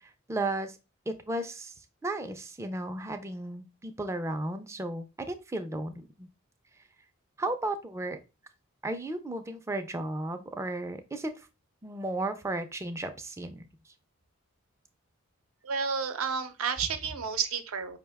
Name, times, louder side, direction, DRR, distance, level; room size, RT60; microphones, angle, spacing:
voice 1, 0.3-0.8 1.1-1.7 2.0-6.3 7.4-8.2 8.8-11.3 11.8-13.7, right 2 dB, 15° right, 8 dB, 0.3 m, -34 dB
voice 2, 15.6-18.0, right 6 dB, 75° right, 9 dB, 0.6 m, -31 dB
5.0 x 2.1 x 3.4 m, 0.29 s
head